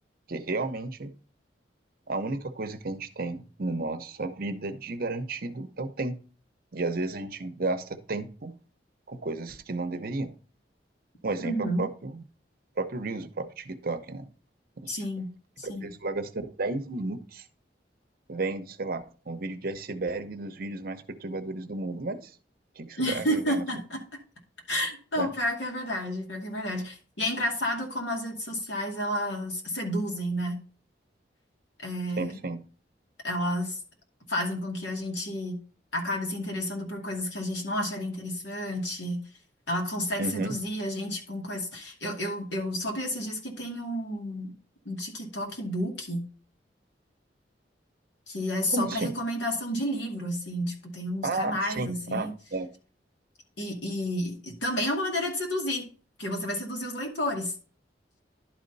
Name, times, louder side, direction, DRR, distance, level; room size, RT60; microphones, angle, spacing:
voice 1, 0.3-1.1 2.1-6.2 6.7-8.6 9.1-10.3 11.2-12.2 12.8-14.3 14.8-14.9 15.6-17.4 18.3-22.3 22.8-23.6 25.2-25.3 32.2-32.6 40.2-40.5 48.7-49.1 51.2-52.7, right 2 dB, 55° right, 9 dB, 0.8 m, -32 dB
voice 2, 11.4-11.9 14.9-15.3 15.6-15.9 23.0-24.0 24.7-30.6 31.8-32.4 33.2-33.8 34.3-35.6 35.9-39.3 39.7-44.5 44.8-46.3 48.3-52.3 53.6-55.9 56.2-57.5, equal, 85° left, 1 dB, 2.4 m, -31 dB
11.0 x 4.3 x 4.0 m, 0.39 s
head